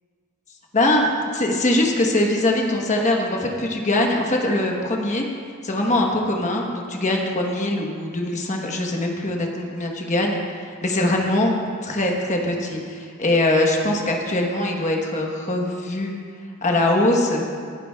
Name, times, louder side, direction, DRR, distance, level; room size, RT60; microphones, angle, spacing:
voice 1, 0.7-5.3 5.6-11.5 11.8-16.1 16.6-17.4, left 1 dB, 35° left, 1 dB, 1.1 m, -22 dB
18.0 x 9.9 x 2.3 m, 2.1 s
head